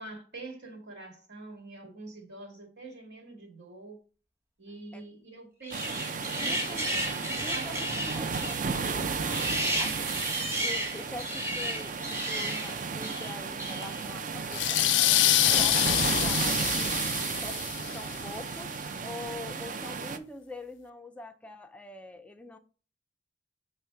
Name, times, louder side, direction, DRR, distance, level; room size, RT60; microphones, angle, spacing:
voice 1, 0.0-4.0 4.6-7.0 7.3-8.2, right 2 dB, 75° right, 2.0 m, -46 dB
sound 1, 5.6-14.1 14.8-15.4, right 1 dB, 15° right, 1.1 m, -34 dB
sound 2, 5.7-20.2, right 5 dB, 45° right, 0.5 m, -33 dB
voice 2, 6.4-6.9 7.4-9.2 9.8-10.2 10.6-18.8 19.0-22.6, left 2 dB, 5° left, 0.4 m, -45 dB
sound 3, 14.5-18.0, left 14 dB, 85° left, 0.4 m, -25 dB
7.0 x 3.3 x 4.5 m
head